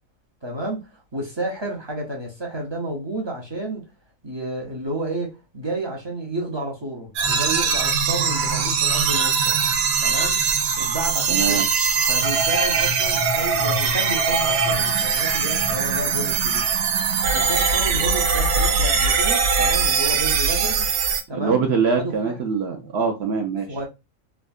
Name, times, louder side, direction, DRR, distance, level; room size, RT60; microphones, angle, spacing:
voice 1, 0.4-3.9 4.2-9.6 10.0-10.4 10.8-11.7 12.1-16.7 17.3-20.9 21.3-21.6 22.0-22.4 23.7-23.9, right 1 dB, 45° right, 0.3 m, -31 dB
sound 1, 7.2-21.2, right 5 dB, 90° right, 1.0 m, -21 dB
voice 2, 11.3-11.7 21.3-23.7, right 5 dB, 65° right, 0.7 m, -23 dB
3.5 x 2.1 x 2.3 m
omnidirectional pair, 1.4 m